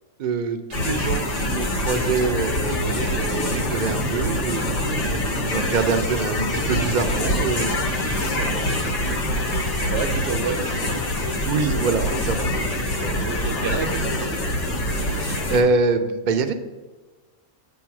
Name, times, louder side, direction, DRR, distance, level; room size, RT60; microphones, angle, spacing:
voice 1, 0.2-8.4 11.4-12.5 13.0-13.2 15.1-16.5, right 4 dB, 50° right, 8 dB, 0.6 m, -25 dB
sound 1, 0.7-15.6, left 1 dB, 70° left, 1.3 m, -25 dB
sound 2, 2.0-15.7, equal, 40° left, 1.1 m, -35 dB
voice 2, 5.0-5.5 8.1-8.7 9.4-10.9 13.0-14.6, right 5 dB, 75° right, 7 dB, 1.1 m, -32 dB
7.6 x 3.1 x 5.9 m, 1.3 s
omnidirectional pair, 1.3 m